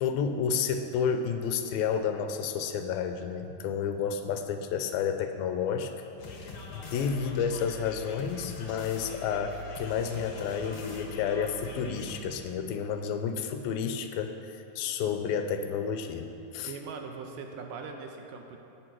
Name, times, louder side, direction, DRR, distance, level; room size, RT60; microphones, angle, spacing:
voice 1, 0.0-5.9 6.7-16.7, left 7 dB, 80° left, 7 dB, 2.4 m, -31 dB
sound 1, 6.2-12.2, left 3 dB, 55° left, 2.2 m, -43 dB
voice 2, 16.7-18.6, right 5 dB, 75° right, 3 dB, 2.1 m, -40 dB
17.0 x 9.1 x 4.5 m, 2.9 s
omnidirectional pair, 4.4 m